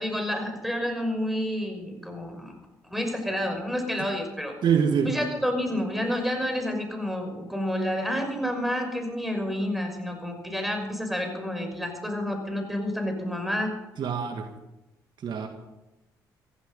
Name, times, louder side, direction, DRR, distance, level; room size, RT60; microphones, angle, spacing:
voice 1, 0.0-2.5 2.9-4.6 5.0-13.7, equal, ahead, 4 dB, 5.9 m, -29 dB
voice 2, 4.6-5.1 14.0-14.5 15.2-15.5, right 7 dB, 60° right, 5 dB, 2.0 m, -24 dB
16.0 x 15.5 x 5.5 m, 0.98 s
supercardioid pair, 60°, 9 cm